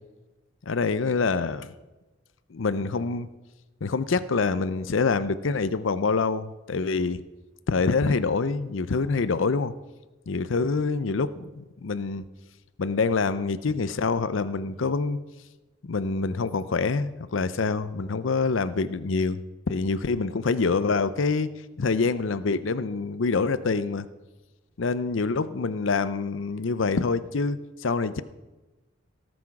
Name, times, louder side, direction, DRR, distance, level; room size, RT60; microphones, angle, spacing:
voice 1, 0.7-1.7 2.5-3.3 3.8-7.2 7.7-9.7 10.3-12.2 12.8-15.2 15.8-21.5 21.8-24.1 24.8-28.2, left 4 dB, 75° left, 14 dB, 0.6 m, -26 dB
18.0 x 6.2 x 5.9 m, 1.1 s
head